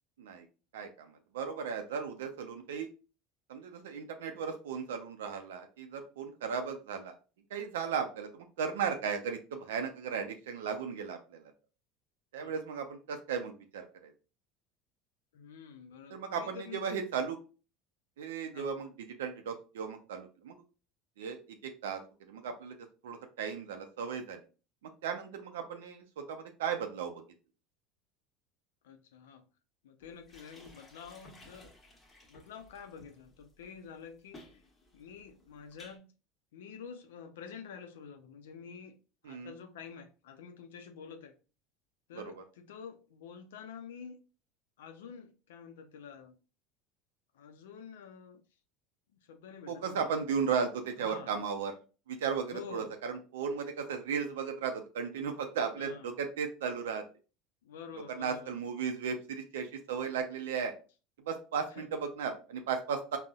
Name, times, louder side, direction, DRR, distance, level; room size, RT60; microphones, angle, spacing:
voice 1, 0.7-2.9 3.5-7.2 7.5-11.5 12.3-14.1 16.1-17.4 18.2-20.6 21.2-22.0 22.3-24.4 25.0-27.2 39.2-39.5 42.2-42.4 49.7-51.8 52.1-57.0 58.1-60.7 61.2-63.2, right 6 dB, 85° right, 0.4 m, -36 dB
voice 2, 15.3-17.0 18.5-18.7 28.8-29.5 29.8-31.7 32.3-34.6 34.9-36.1 36.5-39.0 39.2-41.3 42.1-44.2 44.8-46.4 47.3-48.4 49.2-50.2 51.0-51.4 52.5-53.0 55.8-56.1 57.6-58.5 61.7-61.9, left 6 dB, 85° left, 0.4 m, -48 dB
sound 1, 30.0-36.0, left 1 dB, 15° left, 1.0 m, -57 dB
3.8 x 2.0 x 2.3 m
hypercardioid pair, 95°, 0 cm